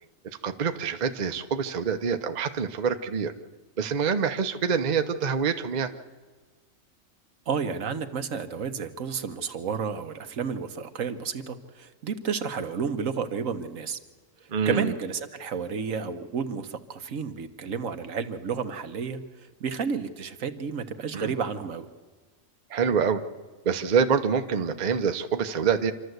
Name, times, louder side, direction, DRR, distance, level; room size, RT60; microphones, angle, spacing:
voice 1, 0.4-3.3 3.8-5.9 14.5-14.9 21.1-21.3 22.7-23.2 23.6-25.9, right 6 dB, 40° right, 8 dB, 0.9 m, -26 dB
voice 2, 7.5-14.0 14.6-21.9, right 6 dB, 75° right, 8 dB, 1.5 m, -31 dB
26.5 x 12.5 x 7.9 m, 1.4 s
omnidirectional pair, 1.4 m